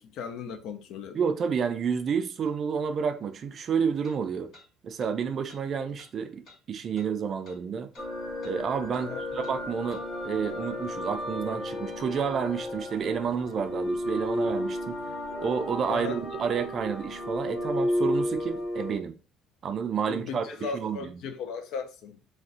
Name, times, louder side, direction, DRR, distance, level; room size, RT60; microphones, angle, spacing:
voice 1, 0.0-1.2 9.0-9.2 15.9-16.2 20.1-22.2, left 5 dB, 75° left, 0.4 m, -37 dB
voice 2, 1.1-4.5 4.8-6.4 6.7-7.9 8.4-15.0 15.4-19.1 19.6-21.1, right 6 dB, 45° right, 0.3 m, -30 dB
sound 1, 2.5-2.6 4.0-4.2 4.5-4.7 5.0-5.1 5.5-5.6 6.0-6.1 6.4-6.6 7.0-7.1 7.4-7.6 7.9-8.1 8.4-8.6 8.9-9.1 9.4-9.6 9.9-10.0, left 2 dB, 50° left, 1.4 m, -54 dB
sound 2, 8.0-19.0, left 1 dB, 15° left, 0.9 m, -33 dB
2.5 x 2.1 x 3.6 m
cardioid pair, 115°, 0 cm